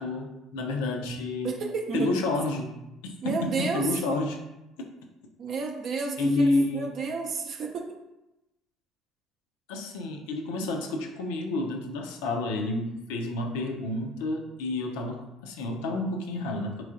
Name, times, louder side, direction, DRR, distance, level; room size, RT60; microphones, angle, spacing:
voice 1, 0.0-1.6 1.9-4.4 6.2-6.9 9.7-16.8, left 2 dB, 90° left, 2 dB, 0.5 m, -29 dB
voice 2, 1.4-2.1 3.2-3.9 5.4-7.9, right 4 dB, 55° right, 1 dB, 0.4 m, -31 dB
3.3 x 3.1 x 2.4 m, 0.95 s
supercardioid pair, 80°, 0 cm